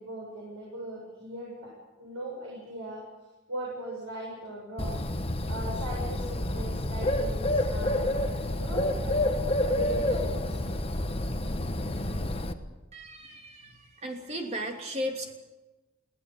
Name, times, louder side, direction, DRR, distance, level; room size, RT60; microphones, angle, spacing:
voice 1, 0.0-3.0 3.5-5.0 5.4-9.3 9.7-10.6, right 1 dB, 90° right, -3 dB, 7.4 m, -39 dB
Bird, 4.8-12.5, left 1 dB, 25° left, 1.2 m, -29 dB
voice 2, 12.9-15.3, equal, 30° right, 3 dB, 3.0 m, -36 dB
22.0 x 16.0 x 8.5 m, 1.1 s
head